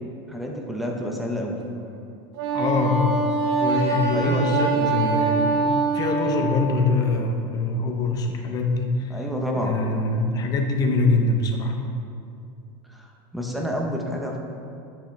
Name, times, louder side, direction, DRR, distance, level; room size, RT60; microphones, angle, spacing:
voice 1, 0.3-1.6 4.1-4.9 9.1-9.8 12.9-14.4, equal, ahead, -1 dB, 0.9 m, -29 dB
Wind instrument woodwind instrument, 2.3-6.6, right 4 dB, 65° right, 1.4 m, -24 dB
voice 2, 2.5-3.2 3.6-9.2 9.6-11.8, left 3 dB, 30° left, 3 dB, 0.8 m, -24 dB
10.0 x 5.7 x 3.4 m, 2.5 s
supercardioid pair, 145°, 13 cm